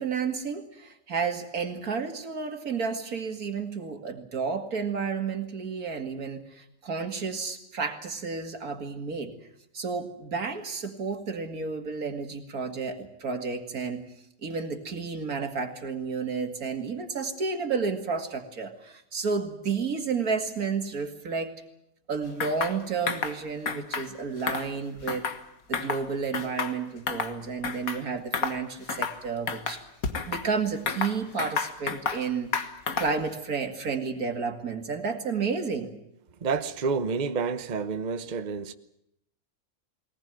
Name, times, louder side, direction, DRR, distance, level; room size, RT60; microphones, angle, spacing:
voice 1, 0.0-9.3 9.7-14.0 14.4-21.5 22.1-25.3 25.7-29.8 30.3-32.5 33.0-35.9, right 5 dB, 85° right, 2.7 m, -31 dB
sound 1, 22.4-22.8 23.1-23.4 23.7-24.1 24.4-25.4 25.7-26.0 26.3-27.3 27.6-28.0 28.3-28.6 28.9-29.2 29.5-30.5 30.9-32.2 32.5-33.2, left 5 dB, 75° left, 1.9 m, -31 dB
voice 2, 36.4-38.7, right 5 dB, 35° right, 1.0 m, -29 dB
21.0 x 19.5 x 9.1 m
omnidirectional pair, 1.5 m